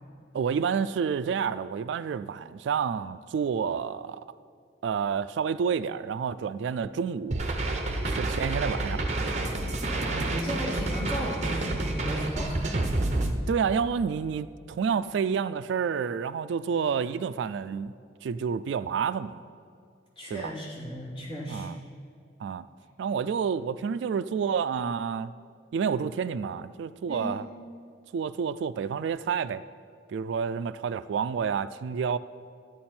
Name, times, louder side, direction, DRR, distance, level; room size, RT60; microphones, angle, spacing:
voice 1, 0.3-4.2 4.8-7.4 8.0-9.0 13.5-17.9 18.2-19.4 20.3-20.5 21.5-21.8 22.4-22.7 23.0-25.3 25.7-27.4 28.1-29.6 30.1-32.2, right 6 dB, 75° right, 15 dB, 0.3 m, -29 dB
sound 1, 7.3-13.3, right 2 dB, 35° right, 0.8 m, -29 dB
voice 2, 9.9-12.7 20.2-21.7 27.1-27.4, equal, 25° left, -5 dB, 2.6 m, -35 dB
13.0 x 9.2 x 4.4 m, 2.2 s
head